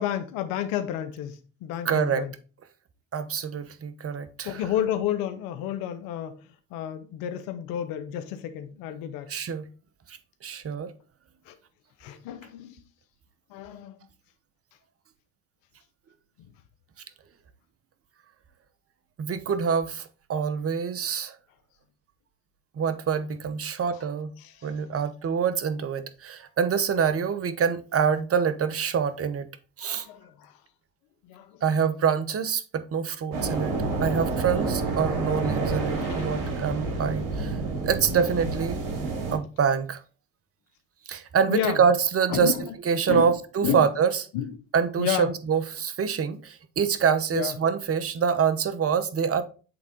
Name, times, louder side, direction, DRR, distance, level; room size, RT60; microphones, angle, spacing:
voice 1, 0.0-2.3 4.4-6.4 6.7-9.3 11.5-11.6 12.0-12.8 13.5-14.0 23.6-24.0 24.4-24.7 29.8-30.6 31.2-31.6 36.0-36.5 41.5-41.8 42.3-42.7 43.1-43.3 43.6-43.9 44.3-44.6 45.0-45.3 47.3-47.6, left 10 dB, 80° left, 0.7 m, -31 dB
voice 2, 1.8-2.2 3.1-4.6 9.3-9.7 10.1-10.2 10.4-10.9 19.2-21.4 22.8-24.3 24.6-29.5 29.8-30.1 31.6-33.7 34.0-37.6 37.8-38.8 39.3-40.0 41.1-42.5 42.9-44.1 44.7-49.4, right 6 dB, 40° right, 0.9 m, -25 dB
sound 1, 33.3-39.4, right 3 dB, 70° right, 2.3 m, -29 dB
7.8 x 3.6 x 3.7 m
supercardioid pair, 65°, 34 cm